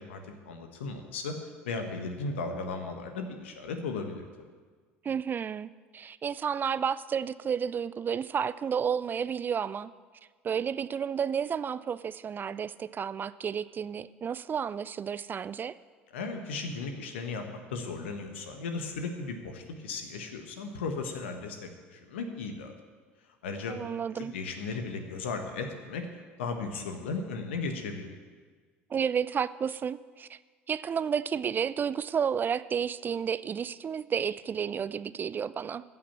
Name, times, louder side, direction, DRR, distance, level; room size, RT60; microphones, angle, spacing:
voice 1, 0.0-1.3 1.6-4.2 16.1-22.7 23.4-23.8 24.2-28.2, left 4 dB, 75° left, 5 dB, 1.4 m, -36 dB
voice 2, 5.0-9.9 10.4-15.8 23.7-24.3 28.9-30.4 30.7-35.8, right 7 dB, 30° right, 16 dB, 0.4 m, -31 dB
15.0 x 5.9 x 7.4 m, 1.5 s
figure-of-eight pair, 65°, 6 cm